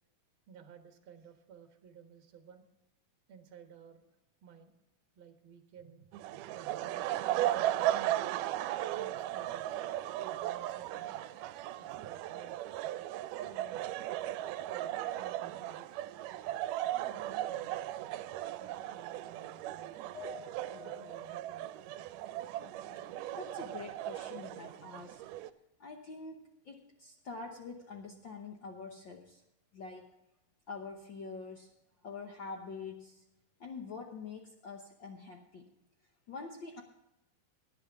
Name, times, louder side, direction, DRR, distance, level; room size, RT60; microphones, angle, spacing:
voice 1, 0.5-2.6 3.3-4.0 4.4-4.8 5.2-7.1 7.4-7.9 8.6-11.3 11.8-12.7 13.3-13.8 14.7-16.1 16.9-17.7 18.6-20.2 20.6-21.8, right 7 dB, 50° right, 5 dB, 1.8 m, -55 dB
sound 1, 6.1-25.5, right 13 dB, 85° right, 2.2 m, -37 dB
sound 2, 20.1-23.6 23.9-25.0, left 7 dB, 55° left, 3.2 m, -54 dB
voice 2, 22.6-25.2 25.8-29.4 29.7-30.1 30.7-31.7 32.0-33.2 33.6-35.7 36.3-36.8, left 4 dB, 80° left, 3 dB, 1.0 m, -46 dB
18.0 x 9.8 x 3.6 m, 0.90 s
omnidirectional pair, 3.7 m